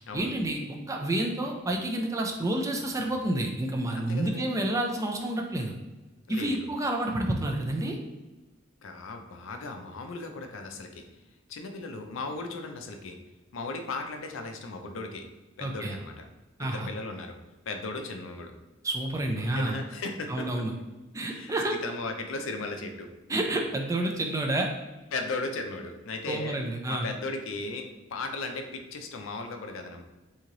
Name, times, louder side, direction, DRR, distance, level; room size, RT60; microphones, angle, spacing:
voice 1, 0.1-5.8 6.3-8.0 15.6-16.0 16.6-16.9 18.8-19.8 20.3-20.7 21.1-21.7 23.3-24.7 26.2-27.1, right 1 dB, 15° right, 2 dB, 0.3 m, -29 dB
voice 2, 3.9-4.5 6.3-6.7 8.8-11.0 11.5-13.2 13.5-15.2 15.6-16.2 16.6-17.4 17.7-18.5 19.3-20.6 21.2-23.1 25.1-26.6 26.9-30.0, left 3 dB, 70° left, 5 dB, 0.4 m, -36 dB
3.1 x 2.7 x 3.7 m, 1.1 s
head